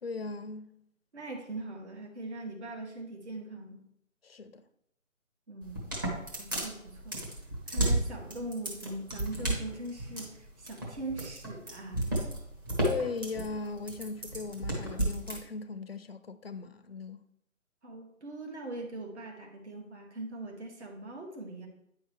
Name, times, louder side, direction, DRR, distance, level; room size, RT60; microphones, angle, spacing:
voice 1, 0.0-0.8 4.2-4.6 12.8-17.2, left 4 dB, 45° left, 0.5 m, -38 dB
voice 2, 1.1-3.8 5.5-6.0 6.4-7.2 7.7-12.0 17.8-21.7, right 2 dB, 55° right, 2.0 m, -41 dB
sound 1, 5.6-15.4, right 1 dB, 15° right, 1.0 m, -32 dB
9.1 x 5.7 x 3.2 m
figure-of-eight pair, 160°, 41 cm